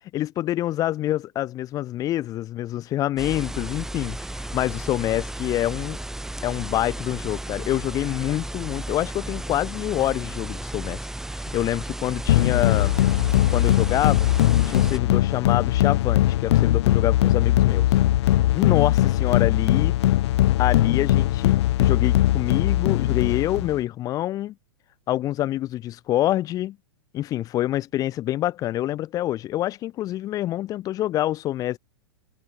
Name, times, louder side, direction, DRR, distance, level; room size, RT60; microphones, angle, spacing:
voice 1, 0.1-6.0 6.4-11.0 11.5-13.0 13.5-14.3 14.7-17.9 18.5-20.0 20.6-24.5 25.1-26.8 27.1-31.8, left 14 dB, 25° left, 0.6 m, -26 dB
sound 1, 3.2-15.0, right 1 dB, 5° right, 2.5 m, -34 dB
sound 2, 12.3-23.8, left 14 dB, 70° left, 0.4 m, -20 dB
hypercardioid pair, 145°, 14 cm